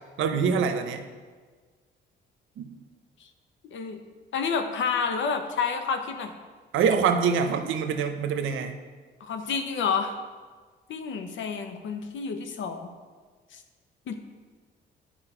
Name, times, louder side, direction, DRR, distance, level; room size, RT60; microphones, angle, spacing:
voice 1, 0.2-1.0 2.6-2.7 6.7-8.8, right 6 dB, 80° right, 7 dB, 0.8 m, -25 dB
voice 2, 3.7-4.0 4.3-6.3 9.2-10.2 10.9-12.9 13.5-13.6 14.1-14.2, left 5 dB, 70° left, 6 dB, 1.0 m, -29 dB
10.0 x 5.2 x 4.9 m, 1.5 s
cardioid pair, 90°, 20 cm